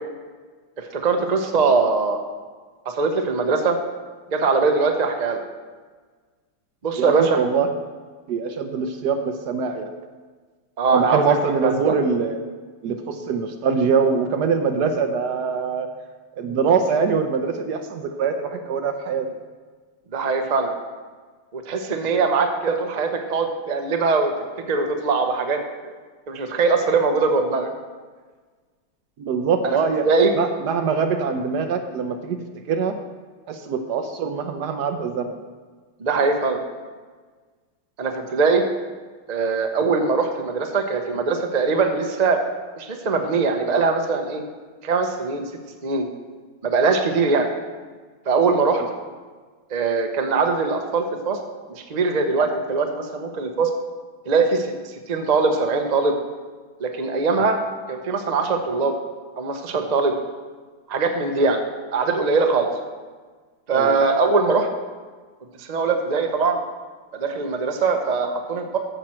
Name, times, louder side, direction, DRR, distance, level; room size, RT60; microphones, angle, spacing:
voice 1, 0.9-2.2 2.9-3.8 4.3-5.4 6.8-7.4 10.8-11.2 11.6-12.0 20.1-20.7 21.5-24.3 24.7-25.9 26.3-27.7 29.6-29.8 30.0-30.3 36.0-36.6 38.0-38.6 39.3-42.4 42.8-44.4 44.8-45.4 45.8-46.1 46.6-47.5 48.3-48.8 49.7-51.4 51.7-53.7 54.3-54.7 55.1-56.2 56.8-57.6 57.9-58.9 59.4-60.1 60.9-61.6 61.9-62.7 63.7-64.7 65.6-66.6 67.1-68.8, right 4 dB, 40° right, 4 dB, 0.6 m, -21 dB
voice 2, 7.0-7.7 8.3-9.9 10.9-12.4 12.8-15.9 16.4-19.4 29.2-30.1 30.3-33.0 33.5-35.4 63.7-64.1, right 5 dB, 70° right, 6 dB, 1.2 m, -23 dB
14.0 x 6.0 x 4.4 m, 1.4 s
omnidirectional pair, 2.1 m